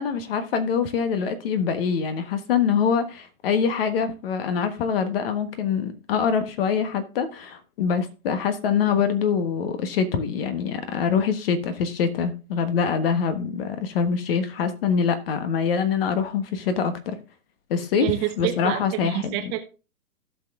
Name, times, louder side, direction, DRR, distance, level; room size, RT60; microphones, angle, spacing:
voice 1, 0.0-17.2 17.7-18.1 18.4-19.4, left 6 dB, 40° left, 1.3 m, -24 dB
voice 2, 18.0-19.6, right 14 dB, 25° right, 1.0 m, -28 dB
16.0 x 6.0 x 2.5 m
hypercardioid pair, 135°, 44 cm